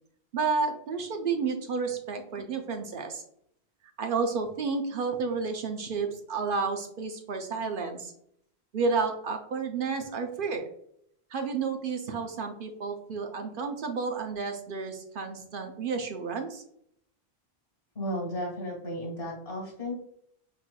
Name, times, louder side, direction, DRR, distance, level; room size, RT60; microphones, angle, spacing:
voice 1, 0.3-3.2 4.0-8.1 8.7-10.7 11.3-16.6, right 4 dB, 60° right, 4 dB, 0.7 m, -31 dB
voice 2, 18.0-19.9, equal, 65° left, -1 dB, 1.8 m, -34 dB
5.7 x 3.1 x 2.2 m, 0.71 s
omnidirectional pair, 1.1 m